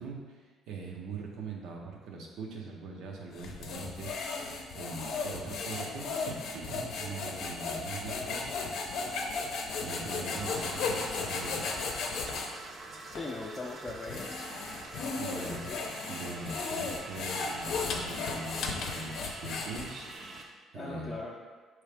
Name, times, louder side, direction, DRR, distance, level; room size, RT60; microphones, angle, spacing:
voice 1, 0.0-8.4 9.3-9.5 9.8-11.7 14.8-15.7 16.1-20.1 20.7-21.2, right 4 dB, 85° right, 0 dB, 0.7 m, -42 dB
sound 1, 3.3-12.5 13.1-13.2 13.9-20.1, left 4 dB, 70° left, 0.6 m, -35 dB
sound 2, 10.3-20.4, right 2 dB, 40° right, 0.5 m, -45 dB
voice 2, 13.1-14.3 15.3-15.8 20.7-21.4, left 2 dB, 20° left, -4 dB, 0.5 m, -40 dB
4.7 x 3.1 x 3.4 m, 1.4 s
cardioid pair, 130°, 0 cm